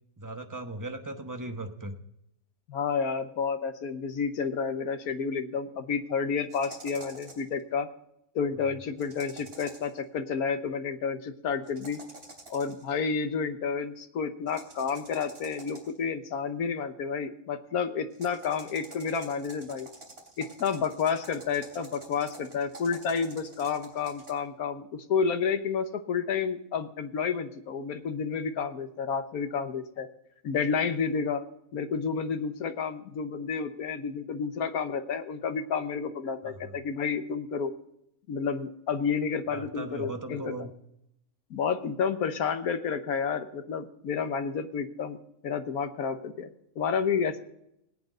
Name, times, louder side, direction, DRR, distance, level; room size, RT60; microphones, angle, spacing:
voice 1, 0.2-2.0 36.4-36.8 39.5-40.7, right 2 dB, 15° right, 5 dB, 0.9 m, -38 dB
voice 2, 2.7-7.9 8.3-12.0 12.5-19.9 20.4-30.1 30.4-31.4 31.7-37.7 38.3-40.7 41.5-45.2 45.4-46.5 46.8-47.4, left 6 dB, 80° left, 9 dB, 1.5 m, -30 dB
sound 1, 6.5-7.5 9.0-10.0 11.6-12.9 14.5-16.0 18.1-24.3, right 2 dB, 45° right, 3.6 m, -48 dB
19.0 x 8.7 x 3.9 m, 0.79 s
omnidirectional pair, 1.5 m